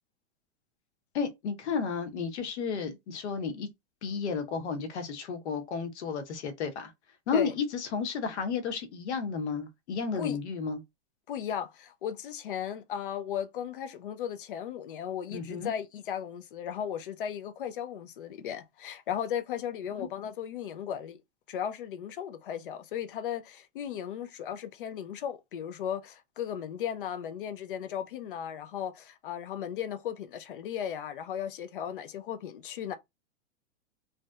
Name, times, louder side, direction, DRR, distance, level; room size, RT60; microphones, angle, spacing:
voice 1, 1.1-3.7 4.0-6.9 7.3-10.8 15.3-15.7 20.0-20.1, left 5 dB, 65° left, 1.0 m, -32 dB
voice 2, 11.3-21.2 21.5-33.0, left 9 dB, 50° left, 0.4 m, -36 dB
3.2 x 2.7 x 2.3 m
supercardioid pair, 175°, 36 cm